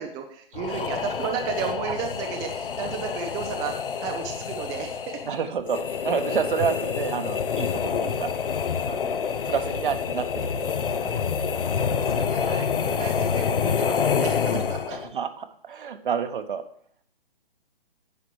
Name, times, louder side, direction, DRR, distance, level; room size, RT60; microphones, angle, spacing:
voice 1, 0.0-5.2 11.8-14.9, right 7 dB, 10° right, 3 dB, 0.6 m, -33 dB
sound 1, 0.5-15.1, left 6 dB, 65° left, 1.0 m, -27 dB
voice 2, 5.2-8.3 8.9-9.2 9.4-10.7 11.0-11.2 14.5-14.6 14.9-16.6, right 7 dB, 60° right, 9 dB, 1.3 m, -29 dB
10.0 x 7.2 x 4.8 m, 0.65 s
hypercardioid pair, 145°, 30 cm